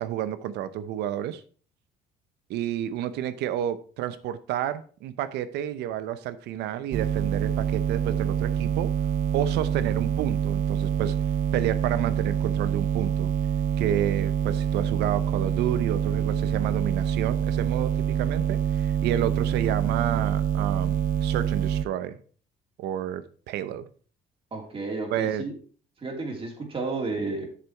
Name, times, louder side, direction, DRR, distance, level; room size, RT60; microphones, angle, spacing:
voice 1, 0.0-1.4 2.5-8.9 9.3-11.1 11.5-13.3 13.8-22.2 22.8-23.9 25.1-25.4, right 11 dB, 80° right, 14 dB, 0.8 m, -30 dB
sound 1, 6.9-21.9, right 9 dB, 55° right, 0.5 m, -26 dB
voice 2, 24.5-25.5 26.0-27.5, right 3 dB, 35° right, 2 dB, 2.8 m, -32 dB
7.4 x 7.0 x 4.5 m, 0.43 s
cardioid pair, 110°, 17 cm